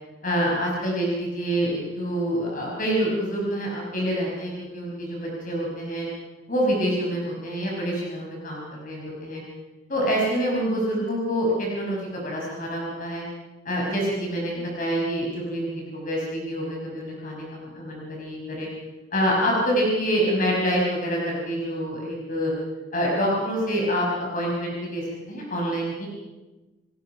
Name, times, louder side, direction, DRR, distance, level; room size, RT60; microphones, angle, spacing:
voice 1, 0.2-6.1 6.5-9.4 9.9-13.2 13.7-18.7 19.1-22.5 22.9-26.1, equal, 45° left, -3 dB, 5.7 m, -26 dB
30.0 x 18.5 x 5.9 m, 1.1 s
head